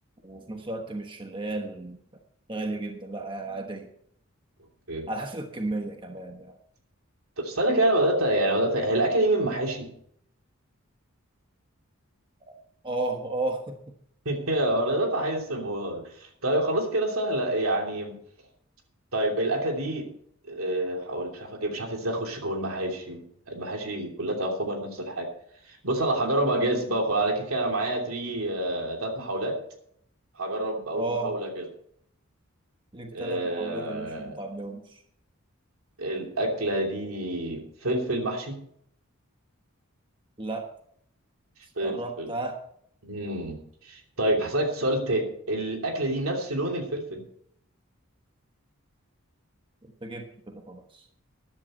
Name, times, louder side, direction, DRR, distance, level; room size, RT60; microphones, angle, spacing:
voice 1, 0.2-2.0 2.5-3.9 5.1-6.6 12.5-12.6 12.8-13.8 31.0-31.4 32.9-35.0 40.4-40.7 41.8-42.6 50.0-51.1, right 2 dB, 25° right, 4 dB, 1.2 m, -33 dB
voice 2, 7.4-9.9 14.2-18.2 19.1-20.1 20.4-25.3 25.7-29.6 30.4-31.6 33.1-34.4 36.0-38.6 41.8-42.3 43.0-43.6 43.8-47.2, right 1 dB, 80° right, 2 dB, 3.0 m, -27 dB
14.0 x 11.0 x 4.4 m, 0.67 s
head